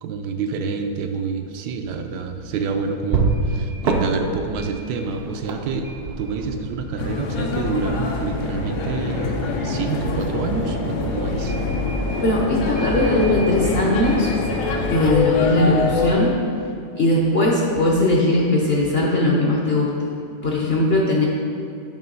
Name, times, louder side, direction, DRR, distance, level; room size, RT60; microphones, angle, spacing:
voice 1, 0.0-5.9 6.2-11.6, right 4 dB, 85° right, 5 dB, 1.2 m, -27 dB
sound 1, 1.8-16.2, right 3 dB, 65° right, 0.6 m, -31 dB
sound 2, 7.0-16.1, left 3 dB, 80° left, 1.3 m, -24 dB
voice 2, 12.2-14.3 14.9-16.4 17.0-20.1 20.4-21.2, left 1 dB, 50° left, -2 dB, 0.7 m, -19 dB
8.9 x 3.1 x 5.2 m, 2.4 s
omnidirectional pair, 1.8 m